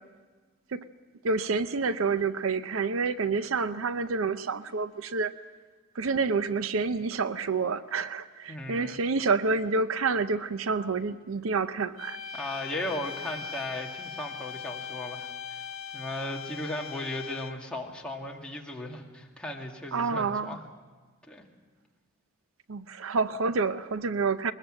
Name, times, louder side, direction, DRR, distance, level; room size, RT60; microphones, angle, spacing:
voice 1, 1.2-5.3 6.0-12.2 19.9-20.6 22.7-24.5, right 4 dB, 70° right, 12 dB, 0.6 m, -28 dB
voice 2, 8.5-9.0 12.3-15.7 15.9-20.6 21.3-21.4, left 1 dB, 5° left, -1 dB, 2.2 m, -36 dB
sound 1, 12.0-17.7, left 6 dB, 75° left, 1.5 m, -40 dB
21.5 x 20.5 x 7.7 m, 1.4 s
head